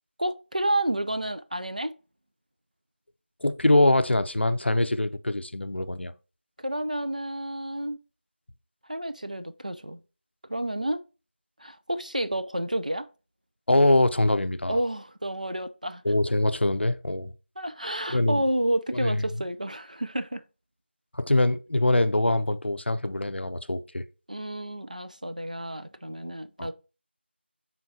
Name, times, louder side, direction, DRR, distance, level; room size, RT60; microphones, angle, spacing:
voice 1, 0.2-1.9 6.6-8.0 8.9-10.0 10.5-11.0 11.6-13.1 14.7-16.0 17.6-20.4 24.3-26.7, right 1 dB, 40° right, 0.4 m, -30 dB
voice 2, 3.4-6.1 13.7-14.8 16.0-17.3 18.1-18.4 18.9-19.2 21.1-24.0 26.6-26.7, left 1 dB, 70° left, 0.6 m, -23 dB
10.0 x 3.9 x 2.8 m
figure-of-eight pair, 180°, 6 cm